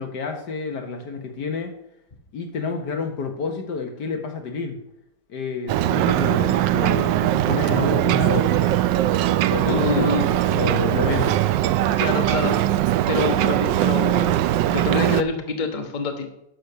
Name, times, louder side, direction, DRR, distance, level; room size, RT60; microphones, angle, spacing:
voice 1, 0.0-1.7 2.3-4.8 5.3-8.8 9.5-11.4, left 4 dB, 65° left, 4 dB, 1.8 m, -29 dB
Ocean, 5.7-15.2, right 13 dB, 80° right, 1.3 m, -20 dB
voice 2, 9.6-10.3 12.0-12.6 13.1-16.3, left 3 dB, 30° left, 3 dB, 1.3 m, -26 dB
11.5 x 6.4 x 6.7 m, 0.81 s
omnidirectional pair, 2.0 m